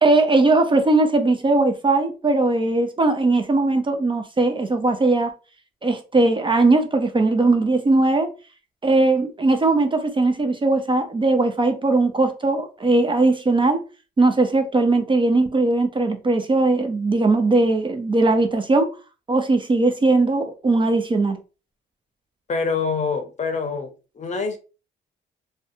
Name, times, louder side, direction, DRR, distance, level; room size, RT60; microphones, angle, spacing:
voice 1, 0.0-5.3 5.8-8.3 8.8-13.8 14.2-18.9 19.3-21.4, right 2 dB, 25° right, 0.4 m, -19 dB
voice 2, 22.5-23.9 24.2-24.6, left 4 dB, 35° left, 0.6 m, -25 dB
2.5 x 2.2 x 2.6 m
cardioid pair, 90°, 20 cm